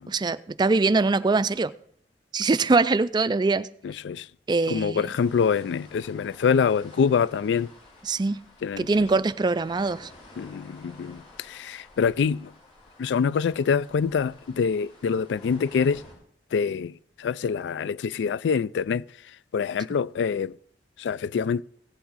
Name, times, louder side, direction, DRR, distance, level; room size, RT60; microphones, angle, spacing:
voice 1, 0.1-1.7 2.3-3.7 4.5-5.1 8.0-8.4 8.8-10.1, right 3 dB, 25° right, 0.4 m, -23 dB
voice 2, 3.8-4.3 4.7-7.7 8.6-8.9 10.4-12.5 13.0-16.0 16.5-19.0 19.5-20.5 21.0-21.6, left 6 dB, 80° left, 0.3 m, -25 dB
sound 1, 5.2-16.1, left 2 dB, 40° left, 5.1 m, -51 dB
16.5 x 8.6 x 4.0 m
head